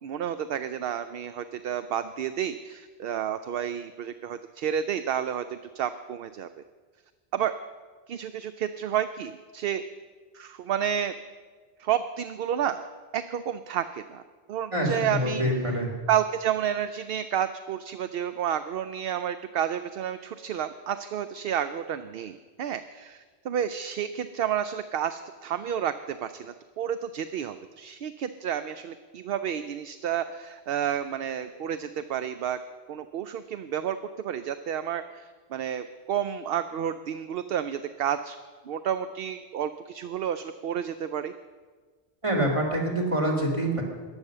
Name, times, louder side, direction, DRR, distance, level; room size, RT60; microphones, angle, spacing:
voice 1, 0.0-6.5 7.3-7.5 8.1-9.8 10.3-11.1 11.8-12.8 13.1-14.2 14.5-15.7 16.1-32.6 32.9-38.4 38.6-41.3, right 9 dB, 65° right, 11 dB, 0.7 m, -30 dB
voice 2, 14.7-15.9 42.2-43.8, right 1 dB, 30° right, 1 dB, 2.5 m, -26 dB
14.5 x 9.8 x 6.6 m, 1.4 s
omnidirectional pair, 1.1 m